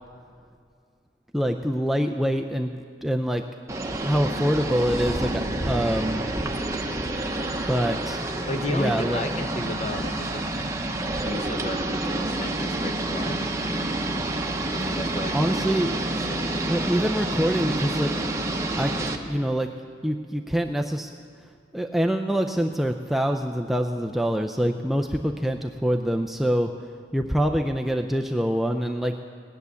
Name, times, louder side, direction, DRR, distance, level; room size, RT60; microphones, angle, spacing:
voice 1, 1.3-3.4 4.0-6.3 7.6-8.2 8.7-9.2 15.3-16.1 16.7-18.1 18.8-18.9 19.3-19.7 20.0-21.1 21.7-26.7 27.1-29.2, equal, ahead, 3 dB, 0.4 m, -25 dB
sound 1, 3.7-19.2, right 2 dB, 15° right, 0.8 m, -28 dB
voice 2, 8.5-10.4 11.2-13.5 14.7-15.7 15.9-16.0 16.3-16.7, left 1 dB, 35° left, 5 dB, 1.0 m, -33 dB
18.0 x 10.5 x 6.9 m, 2.2 s
head